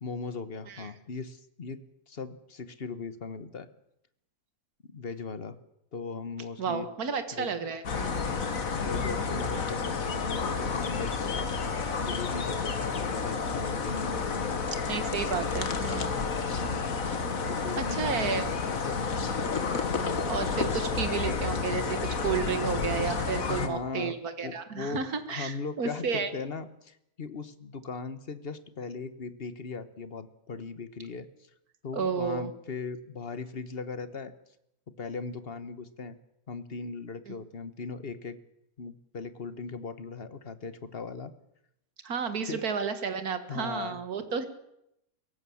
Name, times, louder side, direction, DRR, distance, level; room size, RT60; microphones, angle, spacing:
voice 1, 0.0-3.7 4.9-5.6 5.9-6.9 7.3-7.5 8.8-11.5 12.0-14.8 16.6-16.9 17.5-19.1 23.5-24.2 24.4-31.5 31.8-34.3 34.9-36.2 36.5-38.4 38.8-41.3 42.5-42.6 43.5-44.0, left 4 dB, 40° left, 13 dB, 1.5 m, -38 dB
voice 2, 6.6-8.2 14.9-16.1 17.8-18.4 20.3-26.3 31.9-32.5 37.3-37.4 42.0-44.5, right 6 dB, 75° right, 9 dB, 2.2 m, -32 dB
sound 1, 7.8-23.7, left 5 dB, 65° left, 2.0 m, -30 dB
23.0 x 17.5 x 7.2 m, 0.79 s
omnidirectional pair, 1.6 m